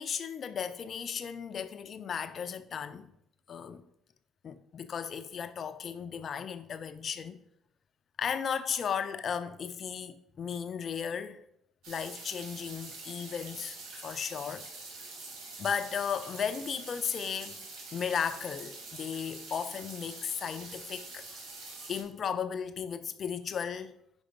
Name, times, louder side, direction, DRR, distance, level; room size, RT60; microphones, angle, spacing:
voice 1, 0.0-3.1 3.5-3.8 4.4-7.4 8.2-11.4 11.9-13.8 14.0-14.7 15.6-21.2 21.9-24.0, left 7 dB, 50° left, 0.6 m, -35 dB
sound 1, 11.8-22.0, right 3 dB, 75° right, 1.7 m, -45 dB
5.2 x 5.0 x 5.3 m
supercardioid pair, 75°, 0 cm